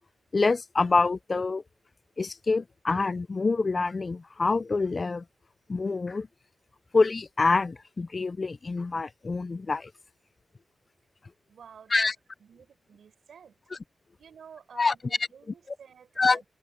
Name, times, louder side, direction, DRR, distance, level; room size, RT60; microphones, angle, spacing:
voice 1, 0.3-1.6 2.2-5.2 5.7-6.3 6.9-9.9 11.9-12.1 14.8-14.9 16.2-16.4, left 3 dB, 35° left, 0.4 m, -26 dB
voice 2, 11.5-12.1 12.4-13.6 14.2-16.4, right 7 dB, 85° right, 6.1 m, -50 dB
wide cardioid pair, 130°, 0 cm